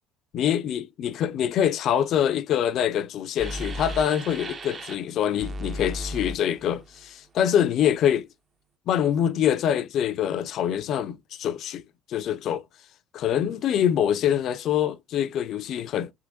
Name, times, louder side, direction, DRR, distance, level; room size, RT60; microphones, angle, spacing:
voice 1, 0.3-8.3 8.9-11.8 12.1-12.6 13.1-16.1, left 9 dB, 55° left, 0.4 m, -25 dB
sound 1, 3.4-5.0 5.4-7.0, equal, 40° right, 0.7 m, -35 dB
3.7 x 2.8 x 2.5 m
hypercardioid pair, 65°, 0 cm